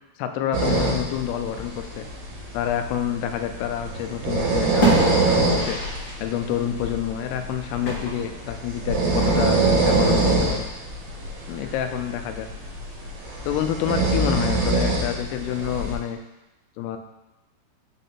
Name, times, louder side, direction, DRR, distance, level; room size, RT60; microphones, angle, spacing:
voice 1, 0.2-2.1 2.5-5.8 6.2-10.7 11.5-12.5 13.4-16.2 16.8-17.0, left 10 dB, 85° left, 6 dB, 2.5 m, -28 dB
sound 1, 0.5-15.9, right 3 dB, 70° right, 2.7 m, -24 dB
sound 2, 3.5-4.3 4.6-6.2 6.5-6.6 7.8-8.5, right 1 dB, 50° left, 1.4 m, -27 dB
6.0 x 3.7 x 4.2 m, 1.0 s
omnidirectional pair, 4.6 m